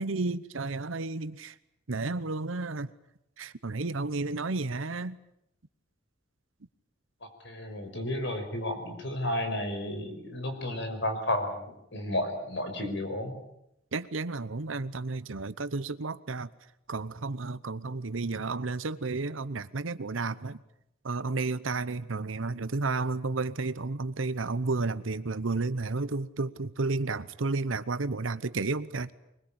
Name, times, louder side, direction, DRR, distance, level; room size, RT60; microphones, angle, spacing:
voice 1, 0.0-1.6 1.9-2.9 3.4-5.2 13.9-16.5 16.9-20.6 21.0-29.1, right 3 dB, 90° right, 14 dB, 0.9 m, -32 dB
voice 2, 7.4-13.4, left 1 dB, 60° left, 6 dB, 5.4 m, -32 dB
23.5 x 21.5 x 8.9 m, 0.82 s
head